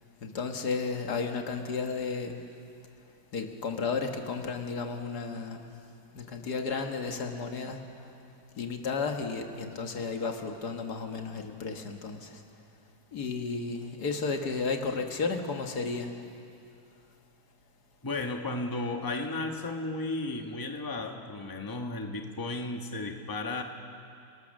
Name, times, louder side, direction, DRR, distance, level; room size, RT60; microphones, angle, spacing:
voice 1, 0.2-2.5 3.3-5.7 6.1-8.1 8.6-12.4 13.1-16.2, left 4 dB, 80° left, 4 dB, 2.1 m, -33 dB
voice 2, 18.0-23.6, left 2 dB, 15° left, 3 dB, 1.2 m, -34 dB
30.0 x 19.5 x 6.5 m, 2.6 s
omnidirectional pair, 1.7 m